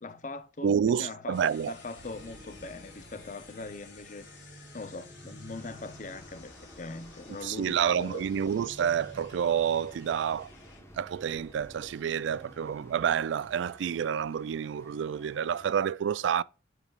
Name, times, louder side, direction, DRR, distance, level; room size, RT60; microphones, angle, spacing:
voice 1, 0.0-4.3 4.7-8.3, left 3 dB, 40° left, 0.7 m, -41 dB
voice 2, 0.6-1.7 7.4-10.5 11.0-16.4, right 8 dB, 75° right, 0.3 m, -29 dB
sound 1, 1.3-10.8, left 4 dB, 80° left, 3.0 m, -54 dB
sound 2, 2.0-13.9, right 1 dB, 50° right, 3.8 m, -53 dB
sound 3, 5.6-15.8, equal, 15° left, 1.2 m, -55 dB
12.5 x 5.0 x 2.4 m
head